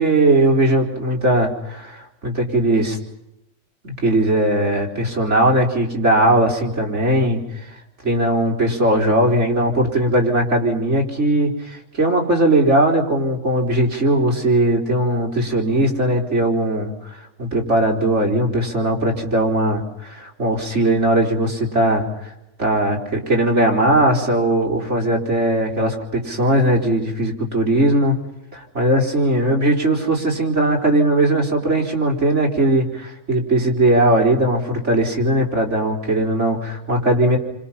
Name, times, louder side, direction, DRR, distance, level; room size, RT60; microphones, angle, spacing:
voice 1, 0.0-3.0 3.8-7.7 8.0-22.3 22.6-28.1 28.5-37.4, right 1 dB, 50° right, 1 dB, 4.4 m, -19 dB
29.5 x 25.5 x 5.7 m, 0.86 s
omnidirectional pair, 1.5 m